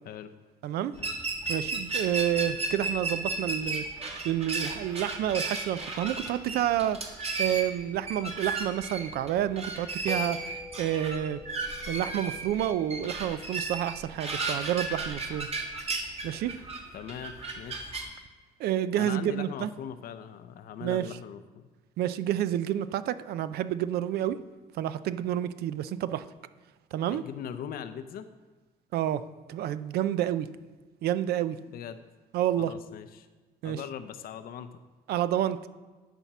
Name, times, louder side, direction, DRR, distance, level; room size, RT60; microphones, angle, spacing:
voice 1, 0.6-1.0 1.5-3.8 4.2-7.0 7.4-11.4 11.9-15.5 16.2-16.6 18.6-19.7 20.8-21.1 22.0-24.4 24.7-26.3 26.9-27.2 28.9-29.2 29.5-30.5 31.0-31.6 32.3-32.7 33.6-33.8 35.1-35.6, right 11 dB, 70° right, 13 dB, 0.5 m, -29 dB
sound 1, 1.0-18.1, right 3 dB, 35° right, 1.5 m, -34 dB
sound 2, 10.1-14.7, left 2 dB, 5° right, 0.4 m, -47 dB
voice 2, 16.9-17.9 19.0-21.7 27.0-28.3 31.7-32.0 32.6-33.3 33.6-34.8, left 8 dB, 60° left, 11 dB, 0.6 m, -40 dB
10.0 x 4.3 x 6.0 m, 1.3 s
cardioid pair, 110°, 17 cm